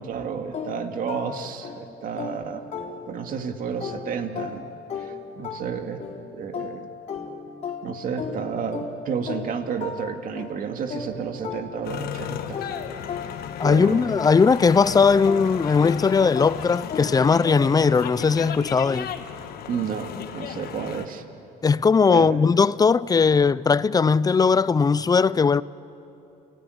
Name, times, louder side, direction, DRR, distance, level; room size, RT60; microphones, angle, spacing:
voice 1, 0.0-2.6 3.1-4.7 5.0-6.0 6.3-6.9 7.8-12.6 13.6-14.2 19.7-21.2 22.1-22.4, right 6 dB, 55° right, 2.2 m, -31 dB
sound 1, 0.5-3.4 3.8-12.2 12.5-18.0, left 5 dB, 45° left, 3.7 m, -36 dB
sound 2, 11.8-21.1, left 8 dB, 65° left, 1.5 m, -35 dB
voice 2, 13.6-19.1 21.6-25.6, left 5 dB, 20° left, 0.5 m, -19 dB
29.0 x 17.5 x 9.8 m
cardioid pair, 110°, 17 cm